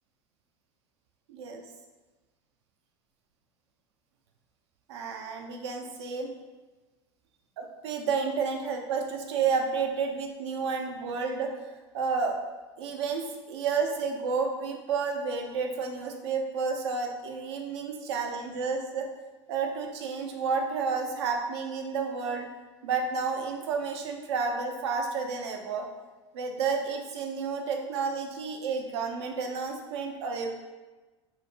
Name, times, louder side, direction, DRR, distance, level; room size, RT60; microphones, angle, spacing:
voice 1, 1.3-1.6 4.9-6.3 7.6-11.5 11.9-12.4 12.8-19.1 19.5-22.5 22.8-25.9 26.3-30.5, right 5 dB, 70° right, 3 dB, 0.4 m, -31 dB
2.3 x 2.0 x 3.2 m, 1.2 s
figure-of-eight pair, 75°, 15 cm